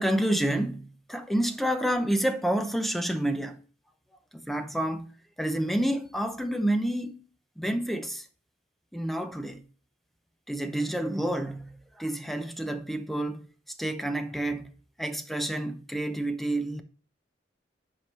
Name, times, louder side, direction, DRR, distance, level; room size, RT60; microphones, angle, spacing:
voice 1, 0.0-3.6 4.3-5.1 5.4-7.2 7.6-8.2 8.9-9.6 10.5-13.5 13.8-14.7 15.0-16.8, right 1 dB, ahead, 0.7 m, -29 dB
7.9 x 5.1 x 4.3 m
head